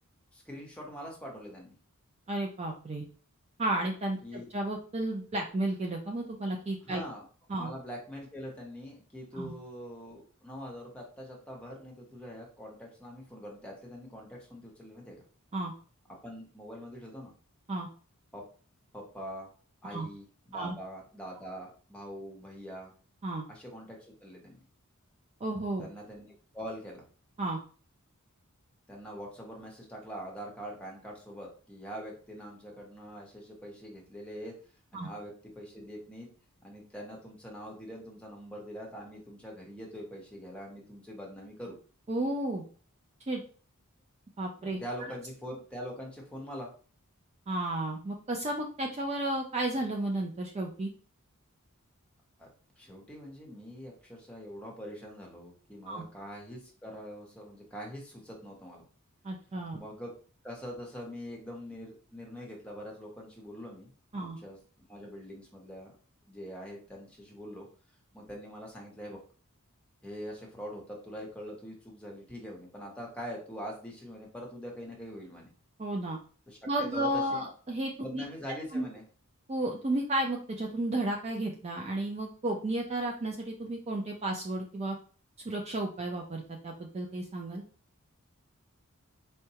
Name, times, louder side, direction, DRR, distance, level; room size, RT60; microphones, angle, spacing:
voice 1, 0.3-1.7 4.2-4.5 6.8-7.2 7.6-15.2 16.2-17.3 18.3-18.4 18.9-19.5 19.8-22.9 23.5-24.6 25.8-26.3 26.5-27.0 28.9-34.6 34.9-36.3 36.6-41.8 44.6-46.7 52.4-52.5 52.8-58.8 59.7-60.1 60.4-64.6 64.9-66.0 66.3-67.7 68.1-69.2 70.0-75.5 76.5-77.4 78.0-79.0, equal, 5° left, -2 dB, 0.9 m, -43 dB
voice 2, 2.3-3.0 3.6-7.0 7.5-7.7 9.3-9.5 15.5-15.7 17.7-17.9 19.9-20.1 20.5-20.7 23.2-23.4 25.4-25.9 27.4-27.6 34.9-35.1 42.1-42.7 43.3-43.4 44.4-44.8 47.5-50.9 55.9-56.0 59.2-59.8 64.1-64.4 75.8-76.2 76.7-78.2 78.7-78.8 79.5-85.0 85.4-87.6, right 1 dB, 30° right, 1 dB, 0.4 m, -33 dB
4.6 x 2.2 x 2.8 m, 0.40 s
head